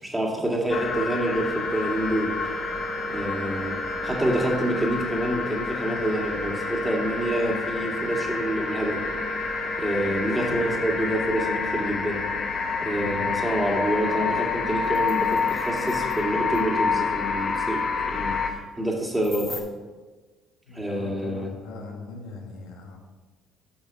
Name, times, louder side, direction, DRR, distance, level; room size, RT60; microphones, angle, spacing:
voice 1, 0.0-2.4 3.1-9.0 9.8-12.2 12.8-19.5 20.7-21.5, right 1 dB, 10° right, -1 dB, 1.9 m, -27 dB
sound 1, 0.7-18.5, left 5 dB, 45° left, 1.0 m, -28 dB
sound 2, 0.8-11.7, right 3 dB, 60° right, 2.1 m, -36 dB
voice 2, 10.5-10.9 12.9-13.3 20.7-23.0, left 2 dB, 85° left, 1 dB, 1.4 m, -40 dB
sound 3, 14.5-14.6 14.8-16.2 16.5-16.6 19.2-19.6, left 2 dB, 15° left, 1.3 m, -41 dB
8.6 x 5.9 x 4.5 m, 1.3 s
supercardioid pair, 90°, 0 cm